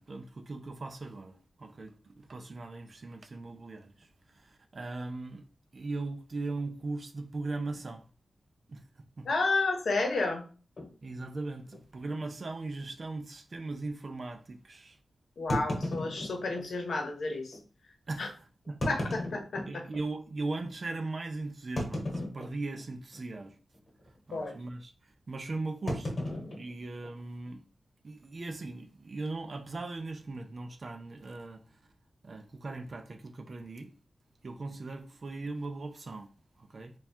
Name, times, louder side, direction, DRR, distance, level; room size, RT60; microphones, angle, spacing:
voice 1, 0.0-5.5 5.7-8.0 8.7-8.8 9.2-9.3 11.0-15.0 18.1-18.8 19.6-23.6 24.3-24.9 25.3-26.1 26.5-27.6 28.0-31.8 32.2-33.9 34.4-36.3 36.6-36.9, right 3 dB, 40° right, 0.4 m, -39 dB
voice 2, 9.3-10.4 15.4-17.6 18.2-18.3 18.9-19.8 24.3-24.5, left 3 dB, 70° left, 0.9 m, -31 dB
sound 1, 10.8-10.9 11.7-11.8 12.1-12.2 12.8-12.9 15.5-16.7 17.5-17.6 18.6-20.1 20.6-20.7 21.8-22.8 23.1-23.5 23.7-24.1 25.9-27.5, left 1 dB, 40° left, 1.2 m, -35 dB
3.4 x 2.3 x 4.2 m
wide cardioid pair, 170°, 0 cm